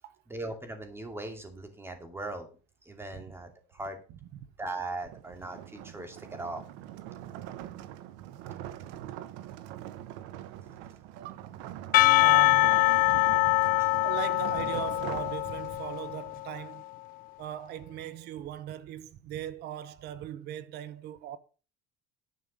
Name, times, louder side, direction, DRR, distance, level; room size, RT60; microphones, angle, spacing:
voice 1, 0.3-2.5 2.8-4.0 4.6-6.6 13.7-13.9, right 2 dB, 10° right, 2.3 m, -39 dB
voice 2, 4.1-4.4 11.2-11.5 12.2-13.7 14.0-16.8 17.4-21.4, right 11 dB, 60° right, 0.8 m, -40 dB
sound 1, 5.0-16.0, right 12 dB, 85° right, 0.9 m, -43 dB
Percussion / Church bell, 11.9-16.5, left 21 dB, 50° left, 0.4 m, -24 dB
10.5 x 5.5 x 6.3 m
cardioid pair, 135°, 19 cm